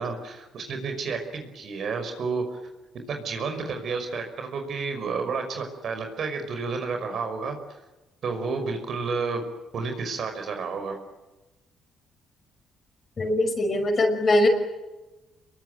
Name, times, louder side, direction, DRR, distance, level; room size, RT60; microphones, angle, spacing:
voice 1, 0.0-2.6 3.1-7.8 8.2-9.5 9.7-11.0, right 4 dB, 60° right, 5 dB, 5.6 m, -31 dB
voice 2, 13.2-14.5, left 1 dB, 40° left, 4 dB, 5.8 m, -22 dB
26.5 x 22.5 x 9.3 m, 1.1 s
cardioid pair, 85°, 0 cm